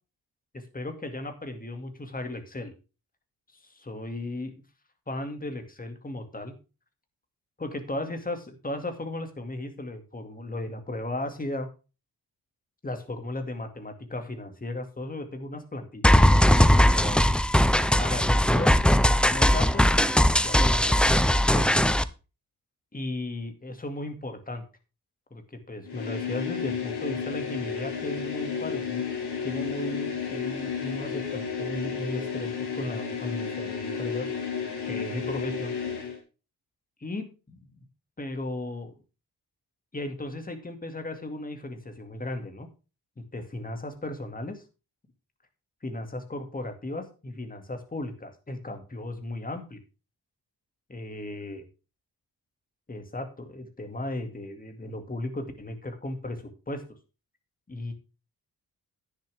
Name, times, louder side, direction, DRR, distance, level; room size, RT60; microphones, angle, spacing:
voice 1, 0.5-2.7 3.5-4.5 5.1-6.5 7.6-11.7 12.8-17.3 18.0-21.7 22.9-24.6 25.3-29.0 29.4-34.3 34.9-35.7 37.0-37.8 38.2-38.9 39.9-42.7 43.2-44.6 45.8-49.8 50.9-51.6 52.9-56.8 57.7-57.9, left 2 dB, 20° left, 6 dB, 2.2 m, -36 dB
sound 1, 16.0-22.0, equal, 5° left, 0.5 m, -20 dB
sound 2, 25.9-36.2, left 6 dB, 85° left, 4.0 m, -32 dB
10.0 x 10.0 x 3.5 m, 0.32 s
cardioid pair, 105°, 39 cm